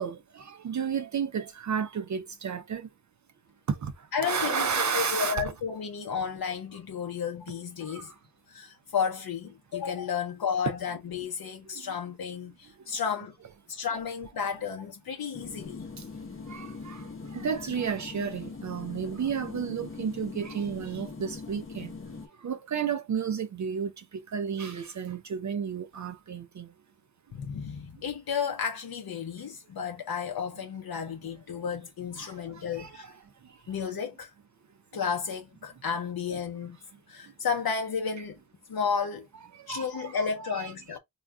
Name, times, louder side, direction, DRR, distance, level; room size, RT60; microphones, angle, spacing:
voice 1, 0.0-2.9 3.7-3.9 4.2-5.4 7.9-8.0 11.7-11.8 16.5-21.9 22.4-26.7 32.2-33.1 39.5-40.7, right 7 dB, 50° right, 0.4 m, -32 dB
voice 2, 4.1-8.1 8.5-13.4 13.7-15.9 27.3-33.1 33.7-34.3 34.9-36.8 37.1-38.4 38.7-39.3 39.7-41.0, left 6 dB, 65° left, 0.7 m, -32 dB
sound 1, 15.3-22.3, left 4 dB, 35° left, 0.7 m, -42 dB
2.4 x 2.2 x 3.5 m
wide cardioid pair, 85°, 39 cm